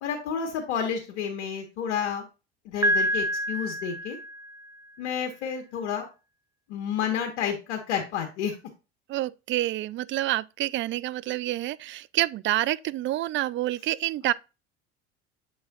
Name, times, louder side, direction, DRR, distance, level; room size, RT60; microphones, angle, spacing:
voice 1, 0.0-2.3 2.6-4.2 5.0-6.1 6.7-8.6, left 7 dB, 70° left, 1.5 m, -30 dB
Piano, 2.8-4.7, equal, 10° right, 0.8 m, -27 dB
voice 2, 9.1-14.3, right 15 dB, 35° right, 0.4 m, -28 dB
7.8 x 5.5 x 2.4 m
hypercardioid pair, 70°, 34 cm